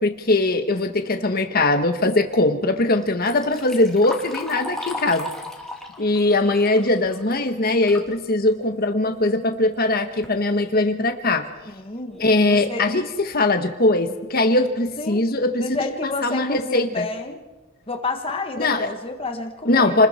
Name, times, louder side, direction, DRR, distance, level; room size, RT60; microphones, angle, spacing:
voice 1, 0.0-5.3 6.0-11.5 12.2-15.8 16.0-17.1 18.6-18.9 19.6-20.1, left 2 dB, 45° left, 6 dB, 1.5 m, -21 dB
Liquid, 3.0-8.1 8.5-8.6 9.5-9.6 10.0-10.4 11.0-11.1 11.6-11.7 12.1-12.4, left 2 dB, 5° left, 2.1 m, -36 dB
voice 2, 11.7-12.2 12.5-12.9 15.0-15.2 15.6-17.4 17.9-20.0, left 3 dB, 25° left, 5 dB, 1.5 m, -30 dB
29.0 x 21.0 x 4.5 m, 1.2 s
head